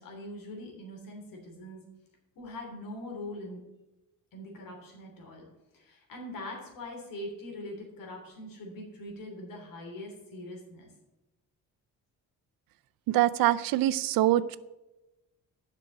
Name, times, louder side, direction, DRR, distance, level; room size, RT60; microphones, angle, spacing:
voice 1, 0.0-1.8 2.3-3.6 4.3-5.5 5.7-10.9, left 1 dB, 75° left, 0 dB, 3.2 m, -42 dB
voice 2, 13.1-14.6, right 14 dB, 90° right, 17 dB, 0.5 m, -24 dB
7.6 x 6.1 x 7.1 m, 1.0 s
cardioid pair, 115°, 34 cm